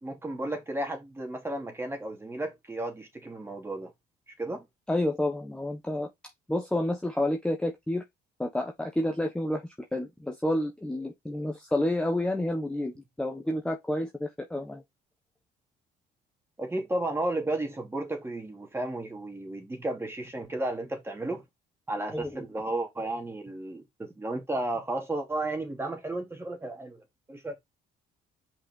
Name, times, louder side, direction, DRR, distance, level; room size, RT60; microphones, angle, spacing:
voice 1, 0.0-3.9 4.4-4.6 16.6-21.4 21.9-27.0 27.3-27.5, right 2 dB, 15° right, 2.8 m, -33 dB
voice 2, 4.9-6.1 6.5-8.0 8.4-9.6 9.9-14.8 22.1-22.4, left 1 dB, 5° left, 1.2 m, -29 dB
5.6 x 5.4 x 3.7 m
cardioid pair, 110°, 17 cm